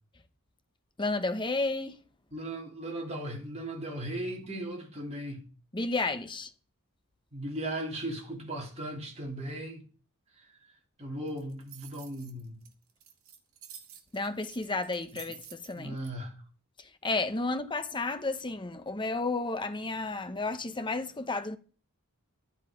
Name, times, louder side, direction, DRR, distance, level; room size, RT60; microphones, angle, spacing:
voice 1, 1.0-2.0 5.7-6.5 14.1-16.0 17.0-21.6, left 3 dB, 20° left, 0.9 m, -32 dB
voice 2, 2.3-5.4 7.3-9.8 10.4-10.5 11.0-12.6 15.7-16.3, right 1 dB, 30° right, 3.2 m, -37 dB
sound 1, 11.3-16.1, right 8 dB, 65° right, 2.1 m, -50 dB
12.0 x 10.5 x 5.1 m
head